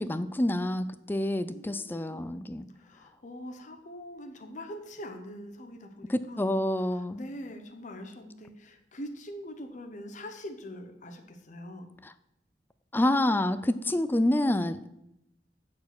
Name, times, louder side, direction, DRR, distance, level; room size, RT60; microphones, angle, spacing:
voice 1, 0.0-2.7 6.1-7.2 12.0-12.1 12.9-14.8, left 1 dB, 10° left, 13 dB, 0.4 m, -27 dB
voice 2, 1.5-2.3 2.8-6.5 6.8-11.9, equal, 45° left, 5 dB, 0.9 m, -43 dB
8.5 x 4.7 x 6.0 m, 0.81 s
head